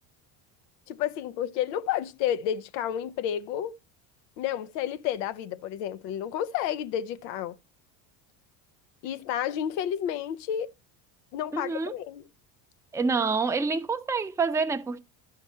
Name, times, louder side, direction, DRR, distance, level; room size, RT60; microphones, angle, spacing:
voice 1, 0.9-3.7 4.4-7.6 9.0-10.7 11.3-12.2, left 10 dB, 85° left, 0.7 m, -31 dB
voice 2, 11.5-11.9 12.9-15.0, right 4 dB, 5° right, 0.5 m, -27 dB
12.0 x 5.0 x 4.2 m
supercardioid pair, 90°, 49 cm